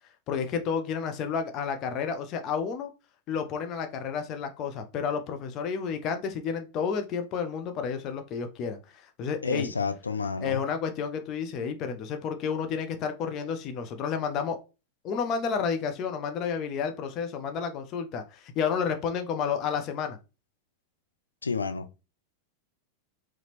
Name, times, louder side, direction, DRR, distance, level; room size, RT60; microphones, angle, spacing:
voice 1, 0.3-2.9 3.3-9.7 10.4-14.6 15.0-20.2, left 6 dB, 35° left, 0.7 m, -31 dB
voice 2, 9.4-10.6 21.4-22.0, left 4 dB, 75° left, 0.5 m, -30 dB
4.0 x 3.0 x 3.0 m
figure-of-eight pair, 90°, 0 cm